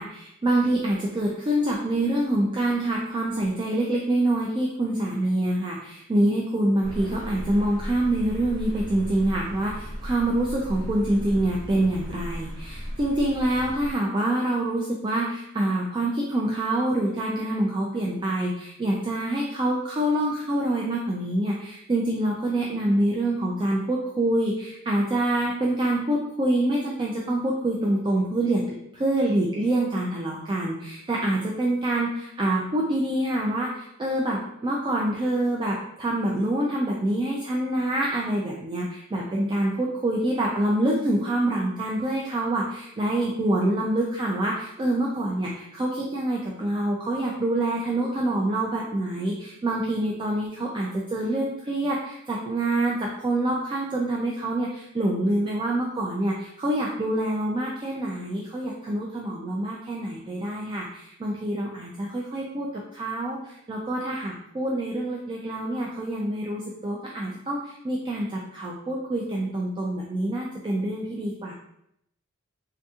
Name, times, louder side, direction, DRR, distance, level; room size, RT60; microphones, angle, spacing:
voice 1, 0.0-71.5, right 1 dB, 25° right, -2 dB, 0.3 m, -26 dB
sound 1, 6.8-13.9, equal, 50° right, 1.5 m, -36 dB
3.4 x 2.8 x 2.3 m, 0.77 s
head